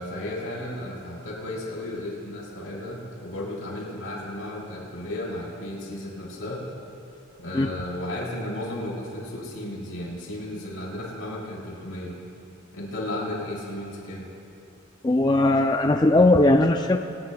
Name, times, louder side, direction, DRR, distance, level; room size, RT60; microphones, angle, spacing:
voice 1, 0.0-6.7 7.4-12.2 12.7-14.3, left 1 dB, 85° left, -4 dB, 4.2 m, -34 dB
voice 2, 15.0-17.0, left 2 dB, 20° left, 5 dB, 0.4 m, -19 dB
25.0 x 18.0 x 2.3 m, 2.7 s
head